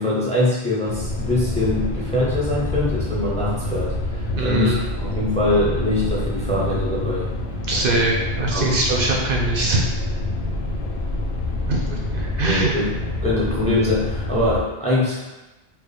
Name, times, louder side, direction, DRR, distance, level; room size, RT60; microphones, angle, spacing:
voice 1, 0.0-7.3 8.5-8.8 12.4-12.9 13.2-15.2, left 1 dB, 10° left, -6 dB, 0.6 m, -23 dB
sound 1, 0.9-14.6, left 1 dB, 85° left, 0.8 m, -27 dB
voice 2, 4.3-4.8 7.7-9.8 11.7-12.8, right 2 dB, 65° right, -2 dB, 0.8 m, -22 dB
4.4 x 2.0 x 3.3 m, 1.1 s
omnidirectional pair, 1.0 m